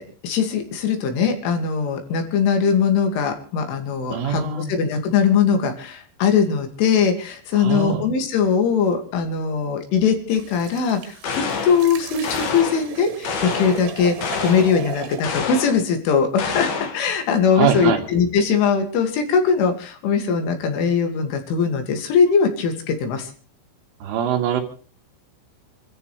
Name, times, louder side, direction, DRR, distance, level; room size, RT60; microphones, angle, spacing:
voice 1, 0.0-14.2 14.4-23.3, left 6 dB, 80° left, 5 dB, 4.9 m, -21 dB
voice 2, 4.1-4.7 7.5-8.0 17.6-18.0 24.0-24.6, right 7 dB, 90° right, 3 dB, 4.9 m, -22 dB
sound 1, 10.3-15.3, right 9 dB, 75° right, 4.0 m, -36 dB
sound 2, 11.2-11.9 12.2-12.9 13.2-13.9 14.2-14.8 15.2-15.8 16.4-17.0, left 5 dB, 55° left, 3.8 m, -27 dB
28.0 x 14.0 x 3.4 m, 0.39 s
omnidirectional pair, 5.5 m